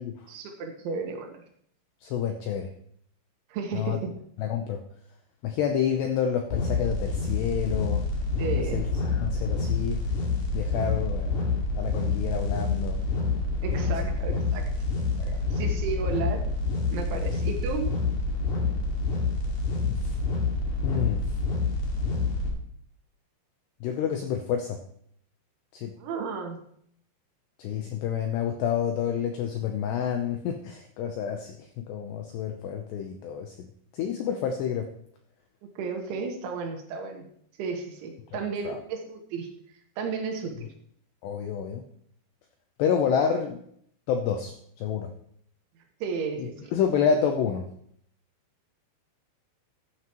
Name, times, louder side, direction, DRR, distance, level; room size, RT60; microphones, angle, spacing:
voice 1, 0.3-1.3 3.5-4.1 8.4-8.9 13.6-14.7 15.2-16.5 16.9-17.9 26.0-26.6 35.8-37.3 37.6-39.5 40.0-40.7 46.0-46.7, right 5 dB, 75° right, 3 dB, 3.5 m, -33 dB
voice 2, 2.0-2.7 3.7-4.0 4.4-4.8 5.4-8.0 8.6-10.0 10.5-11.3 11.8-13.0 15.2-15.5 17.1-17.2 19.9-20.2 20.8-21.2 23.8-24.8 25.7-25.9 27.6-31.5 31.9-33.7 33.9-34.9 38.6-38.8 41.2-41.8 42.8-43.6 44.1-45.1 46.4-47.6, left 7 dB, 80° left, 4 dB, 2.4 m, -28 dB
sound 1, 6.5-22.5, left 3 dB, 50° left, 2.9 m, -27 dB
14.5 x 9.6 x 3.0 m, 0.67 s
omnidirectional pair, 5.9 m